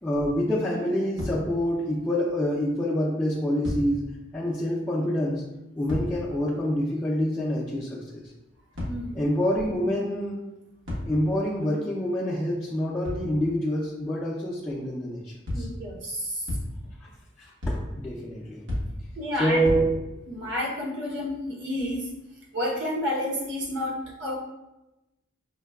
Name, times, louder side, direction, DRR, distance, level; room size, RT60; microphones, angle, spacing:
voice 1, 0.0-4.0 4.3-5.4 5.8-8.2 9.1-10.4 10.9-15.7 17.4-18.6 19.4-19.9, equal, 10° left, -8 dB, 0.4 m, -27 dB
sound 1, 1.2-1.8 2.2-2.3 3.6-4.2 5.9-6.5 8.7-9.4 10.8-11.5 13.0-13.5 15.5-16.0 16.5-17.1 17.6-18.2 18.7-19.3 19.6-20.3, left 1 dB, 90° right, 1.2 m, -34 dB
voice 2, 8.8-9.2 15.5-16.5 19.2-19.6 20.3-22.1 22.5-24.3, left 1 dB, 65° right, -3 dB, 0.8 m, -30 dB
4.5 x 2.1 x 2.2 m, 0.97 s
head